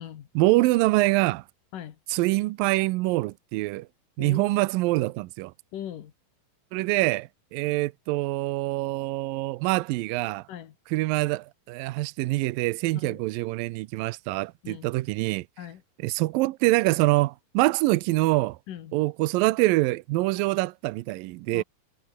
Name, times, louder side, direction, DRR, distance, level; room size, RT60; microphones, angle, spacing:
voice 1, 0.4-1.4 2.1-3.9 4.2-5.5 6.7-10.5 10.9-15.5 16.0-18.6 18.9-21.6, right 20 dB, 80° right, 2.1 m, -25 dB
voice 2, 4.2-4.6 5.7-6.1 10.5-10.8 12.9-13.2 14.6-14.9 15.6-15.8 18.7-19.0 21.5-21.6, left 10 dB, 60° left, 3.0 m, -39 dB
omnidirectional pair, 4.7 m